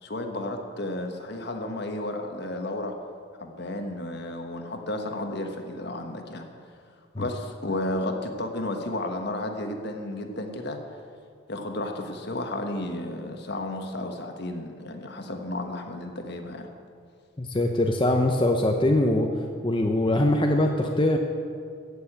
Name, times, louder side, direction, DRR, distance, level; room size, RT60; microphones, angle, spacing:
voice 1, 0.0-2.9 3.4-6.5 7.2-10.8 11.5-16.7, left 1 dB, 55° left, 5 dB, 1.3 m, -32 dB
voice 2, 17.4-19.3 19.6-21.2, left 1 dB, 25° left, 2 dB, 0.7 m, -22 dB
14.5 x 6.8 x 8.7 m, 2.2 s
head